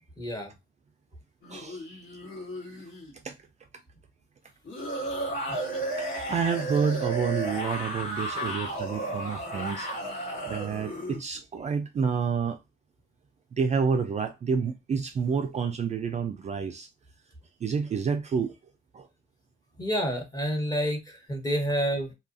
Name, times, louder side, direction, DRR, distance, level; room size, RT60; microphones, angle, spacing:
voice 1, 0.2-0.5 5.5-5.6 19.8-22.1, equal, 20° left, 1.1 m, -29 dB
sound 1, 1.4-3.1 4.6-11.2, right 1 dB, 75° left, 1.6 m, -33 dB
voice 2, 1.5-1.8 3.2-3.4 6.0-12.6 13.5-16.9 17.6-18.5 18.9-19.1, right 6 dB, 35° right, 0.4 m, -29 dB
2.7 x 2.4 x 2.5 m
cardioid pair, 90°, 20 cm